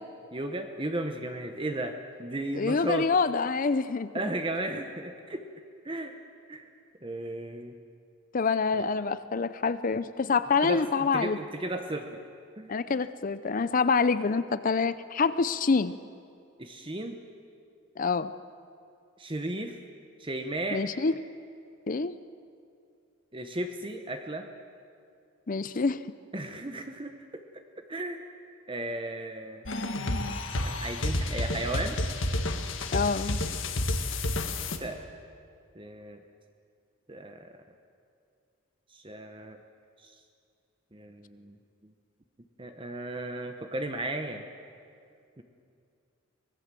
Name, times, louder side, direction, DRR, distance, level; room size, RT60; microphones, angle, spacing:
voice 1, 0.3-3.1 4.1-5.4 5.8-6.1 6.5-6.7 7.0-7.8 8.8-8.9 10.6-12.2 12.6-12.7 16.6-17.2 19.2-19.8 20.2-20.8 23.3-24.5 26.3-27.6 27.9-28.2 28.7-29.6 30.6-32.0 34.8-35.0 35.7-36.2 37.1-37.6 38.9-39.6 40.0-40.1 40.9-41.6 41.8-41.9 42.6-44.4 45.4-45.5, right 1 dB, 25° right, 5 dB, 1.0 m, -35 dB
voice 2, 2.5-4.1 8.3-11.4 12.7-15.9 18.0-18.3 20.7-21.2 21.9-22.1 25.5-26.0 32.9-33.4, left 4 dB, 40° left, 14 dB, 0.5 m, -26 dB
sound 1, 29.7-34.8, left 1 dB, 65° left, 1.7 m, -30 dB
24.5 x 19.0 x 7.6 m, 2.4 s
head